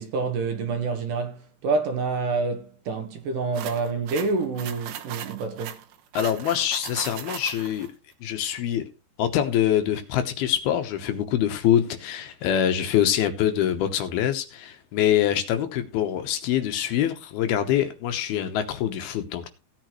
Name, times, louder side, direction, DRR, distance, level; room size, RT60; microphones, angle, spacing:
voice 1, 0.0-5.8, right 4 dB, 65° right, 2.3 m, -27 dB
sound 1, 3.5-7.9, right 10 dB, 85° right, 3.3 m, -38 dB
voice 2, 6.1-7.9 8.2-8.8 9.2-19.5, left 10 dB, 75° left, 2.8 m, -24 dB
16.5 x 9.0 x 3.1 m
omnidirectional pair, 4.8 m